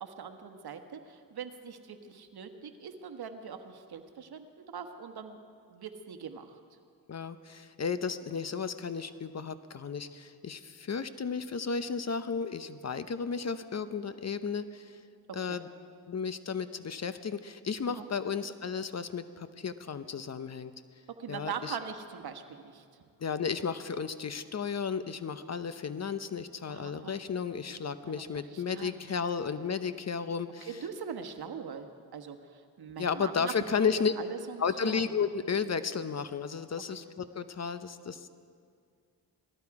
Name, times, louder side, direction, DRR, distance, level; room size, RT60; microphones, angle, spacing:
voice 1, 0.0-5.4 5.7-6.6 15.3-15.6 17.9-18.1 21.2-22.8 26.7-27.1 28.0-28.9 30.7-31.9 32.1-33.9 34.2-35.1, right 7 dB, 60° right, 7 dB, 1.3 m, -42 dB
voice 2, 7.1-15.0 15.3-15.7 16.1-20.7 21.3-21.8 23.2-30.7 33.0-34.1 34.6-38.3, left 6 dB, 40° left, 12 dB, 0.7 m, -33 dB
18.0 x 13.5 x 4.8 m, 2.2 s
cardioid pair, 65°, 42 cm